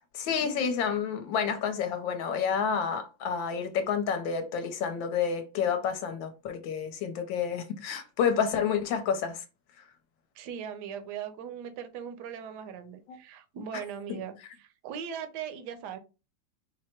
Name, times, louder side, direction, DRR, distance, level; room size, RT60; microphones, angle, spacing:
voice 1, 0.1-9.4 13.1-13.2 14.1-14.2, left 7 dB, 70° left, 1.4 m, -29 dB
voice 2, 10.3-16.0, right 8 dB, 65° right, 1.1 m, -39 dB
4.6 x 2.1 x 4.3 m
omnidirectional pair, 2.4 m